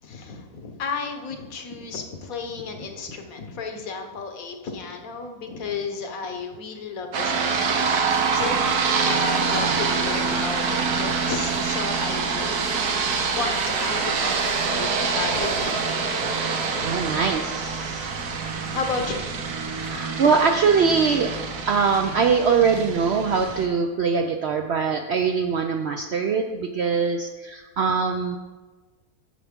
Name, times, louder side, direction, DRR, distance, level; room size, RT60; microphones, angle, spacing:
voice 1, 0.0-12.6 13.2-17.2 18.6-19.3 19.7-20.0, left 4 dB, 65° left, 5 dB, 1.4 m, -33 dB
sound 1, 7.1-23.7, right 5 dB, 85° right, 1.5 m, -25 dB
voice 2, 16.8-18.1 19.7-21.3 21.7-28.4, right 5 dB, 65° right, 4 dB, 0.6 m, -22 dB
10.0 x 6.8 x 3.6 m, 1.3 s
omnidirectional pair, 1.6 m